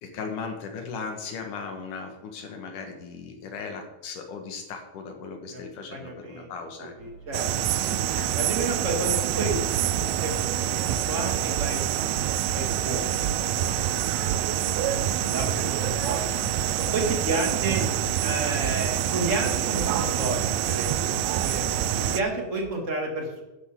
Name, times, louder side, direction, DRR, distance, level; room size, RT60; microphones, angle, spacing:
voice 1, 0.0-6.9 7.8-8.3, left 5 dB, 90° left, 4 dB, 3.1 m, -37 dB
voice 2, 5.9-6.5 7.0-7.5 8.4-13.6 13.9-16.2 16.8-17.8 18.2-21.6 22.1-23.4, right 2 dB, 30° right, 1 dB, 2.1 m, -32 dB
sound 1, 7.0-8.8 9.4-11.9 12.2-15.3 15.8-22.2 22.6-22.7, left 2 dB, 60° left, 3.7 m, -46 dB
sound 2, 7.3-22.2, right 11 dB, 80° right, 1.6 m, -26 dB
12.0 x 10.5 x 3.8 m, 1.0 s
omnidirectional pair, 3.5 m